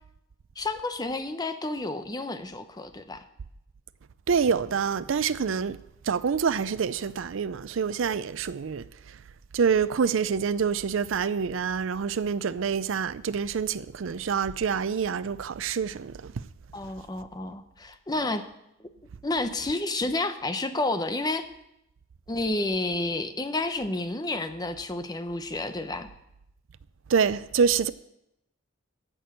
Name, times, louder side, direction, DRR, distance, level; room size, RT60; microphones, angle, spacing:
voice 1, 0.6-3.2 16.7-18.4 18.8-18.9 19.2-21.4 22.3-26.1, left 2 dB, 20° left, 0.7 m, -30 dB
voice 2, 4.3-5.8 6.0-8.8 9.5-16.4 27.1-27.9, right 6 dB, 75° right, 0.5 m, -26 dB
15.0 x 6.2 x 6.4 m
head